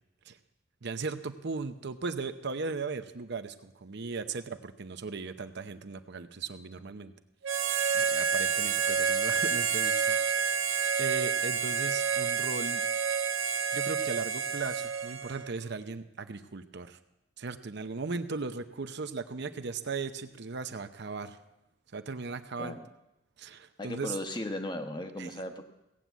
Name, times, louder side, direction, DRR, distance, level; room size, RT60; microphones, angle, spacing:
voice 1, 0.8-7.1 7.9-10.2 10.5-10.7 11.0-12.8 13.7-17.0 17.4-21.4 21.9-22.8 23.4-24.2 25.2-25.3, right 4 dB, 60° right, 9 dB, 0.8 m, -37 dB
Harmonica, 7.4-15.5, right 6 dB, 90° right, 1.0 m, -29 dB
voice 2, 23.8-25.6, left 1 dB, 25° left, 6 dB, 1.1 m, -36 dB
17.0 x 7.7 x 8.3 m, 0.90 s
head